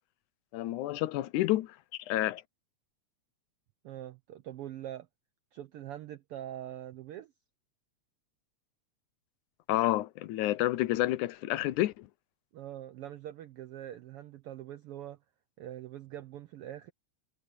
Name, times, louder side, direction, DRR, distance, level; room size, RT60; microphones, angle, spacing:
voice 1, 0.5-1.8 2.1-2.4 9.7-12.1, left 15 dB, 90° left, 2.3 m, -29 dB
voice 2, 3.8-5.1 5.5-7.3 12.5-15.2 15.6-16.9, right 12 dB, 80° right, 1.3 m, -43 dB
omnidirectional pair, 3.4 m